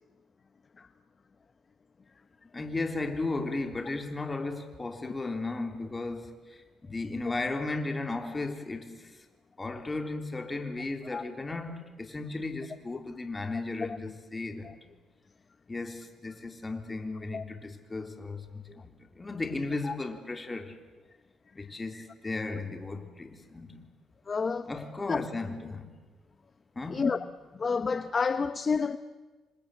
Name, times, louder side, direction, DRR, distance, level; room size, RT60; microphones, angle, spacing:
voice 1, 2.5-9.2 9.6-14.7 15.7-20.8 21.6-23.9 24.7-25.9 26.8-27.1, left 3 dB, 20° left, 3.5 m, -35 dB
voice 2, 24.3-24.7 25.1-25.2 26.9-27.2 27.6-29.0, left 5 dB, 35° left, 1.0 m, -29 dB
28.5 x 25.5 x 8.0 m
cardioid pair, 90°, 0 cm